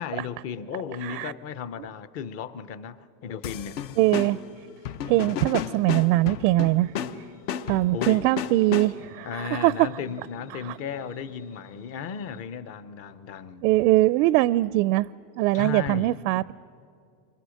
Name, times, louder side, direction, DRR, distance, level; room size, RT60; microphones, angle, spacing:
voice 1, 0.0-3.0 3.2-3.8 7.9-8.5 9.2-13.6 15.5-16.2, left 7 dB, 30° left, 0.7 m, -35 dB
voice 2, 1.0-1.3 4.0-4.4 5.1-6.9 7.7-9.9 10.6-10.8 13.6-15.1 15.4-16.5, right 18 dB, 75° right, 0.5 m, -22 dB
sound 1, 3.4-9.2, left 8 dB, 65° left, 1.2 m, -33 dB
sound 2, 4.0-12.4, left 5 dB, 85° left, 2.6 m, -55 dB
29.0 x 25.0 x 6.4 m
cardioid pair, 165°, 50 cm